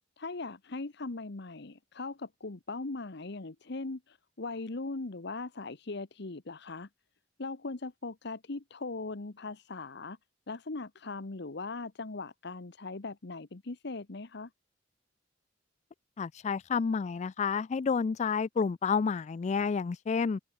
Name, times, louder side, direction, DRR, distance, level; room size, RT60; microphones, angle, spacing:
voice 1, 0.2-6.9 7.4-10.2 10.5-14.5, left 3 dB, 60° left, 1.1 m, -39 dB
voice 2, 16.2-20.4, left 5 dB, 35° left, 0.3 m, -30 dB
head